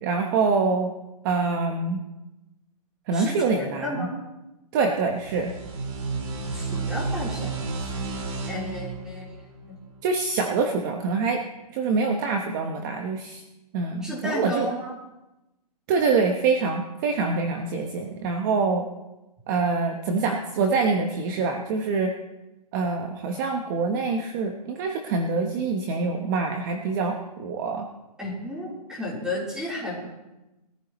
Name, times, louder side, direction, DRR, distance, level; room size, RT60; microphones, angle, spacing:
voice 1, 0.0-0.9 1.2-2.0 3.1-4.1 4.7-5.5 10.0-11.4 11.7-13.4 13.7-14.7 15.9-18.9 19.5-22.1 22.7-27.9, right 4 dB, 30° right, 4 dB, 1.1 m, -25 dB
voice 2, 3.1-4.1 6.5-7.6 8.5-9.4 9.7-9.8 14.0-14.9 28.2-30.1, left 1 dB, 5° right, -5 dB, 3.7 m, -32 dB
sound 1, 5.1-10.4, right 4 dB, 55° right, 4.7 m, -32 dB
21.0 x 14.5 x 3.1 m, 1.0 s
hypercardioid pair, 160°, 21 cm